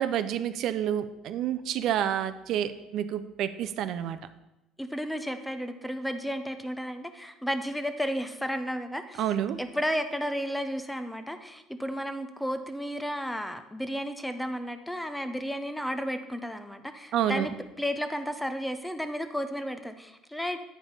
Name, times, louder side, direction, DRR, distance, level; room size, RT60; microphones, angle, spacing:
voice 1, 0.0-4.2 9.2-9.6 17.1-17.5, right 10 dB, 55° right, 12 dB, 0.4 m, -29 dB
voice 2, 4.8-9.3 9.6-17.5 17.8-20.6, equal, 5° left, 9 dB, 0.5 m, -33 dB
8.8 x 5.1 x 5.4 m, 0.94 s
cardioid pair, 160°, 0 cm